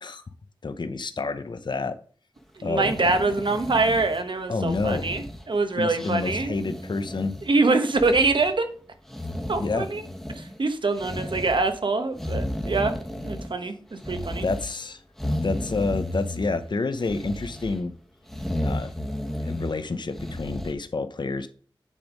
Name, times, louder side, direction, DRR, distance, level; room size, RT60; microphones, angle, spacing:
voice 1, 0.6-2.0 2.6-2.9 4.5-5.1 5.8-7.4 9.6-9.9 14.4-15.0 15.4-17.9 18.6-18.9 19.4-21.5, left 3 dB, 55° left, 10 dB, 0.7 m, -28 dB
voice 2, 2.6-6.5 7.4-8.7 9.5-10.0 10.3-12.9 13.2-14.5, right 3 dB, 65° right, 8 dB, 1.0 m, -24 dB
sound 1, 2.7-4.3 4.7-5.6 6.0-7.5 7.8-8.5 9.1-10.6 10.9-11.7 12.1-13.7 14.0-14.7 15.2-16.6 17.0-17.8 18.3-19.8 20.1-20.7, left 1 dB, 5° left, 1.2 m, -33 dB
8.5 x 3.5 x 5.0 m, 0.43 s
wide cardioid pair, 65°, 9 cm